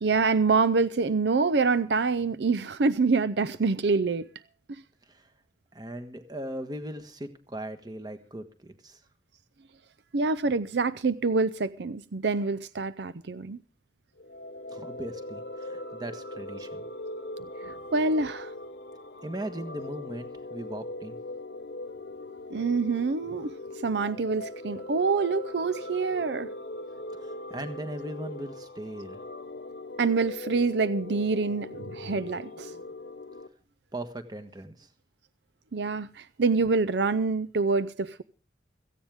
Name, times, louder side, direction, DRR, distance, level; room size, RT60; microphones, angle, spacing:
voice 1, 0.0-4.3 4.7-4.8 10.1-13.6 17.6-18.5 22.5-23.6 23.8-26.5 30.0-32.8 35.7-38.2, right 4 dB, 70° right, 0.6 m, -26 dB
voice 2, 5.7-9.0 14.7-16.9 19.2-21.2 27.2-29.2 33.9-34.9, right 1 dB, 20° right, 1.4 m, -38 dB
sound 1, 14.2-33.5, left 2 dB, 65° left, 1.0 m, -40 dB
17.0 x 15.0 x 3.6 m
head